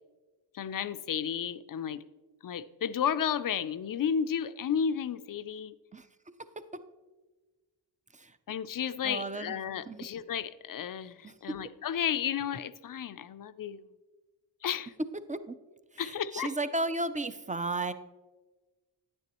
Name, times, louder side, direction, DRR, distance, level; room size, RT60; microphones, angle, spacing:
voice 1, 0.5-2.0 2.4-5.7 8.5-13.8 14.6-14.9 16.0-16.5, left 8 dB, 50° left, 13 dB, 0.4 m, -32 dB
voice 2, 9.0-9.6 9.9-10.1 11.2-11.4 15.3-15.6 15.9-17.9, right 2 dB, 20° right, 11 dB, 0.4 m, -34 dB
9.6 x 9.1 x 3.0 m, 1.2 s
wide cardioid pair, 85°, 46 cm